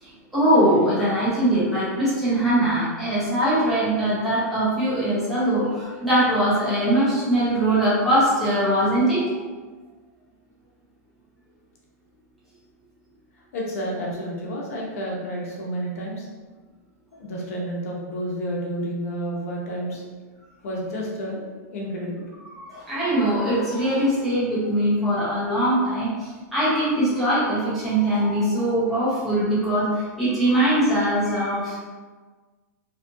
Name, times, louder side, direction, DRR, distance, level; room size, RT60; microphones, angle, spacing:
voice 1, 0.0-9.2 22.5-31.8, right 1 dB, ahead, -12 dB, 0.6 m, -22 dB
voice 2, 13.5-16.3 17.1-20.1 20.6-21.4 21.7-22.2, equal, 55° left, -3 dB, 0.7 m, -30 dB
2.8 x 2.4 x 2.6 m, 1.4 s
supercardioid pair, 180°, 9 cm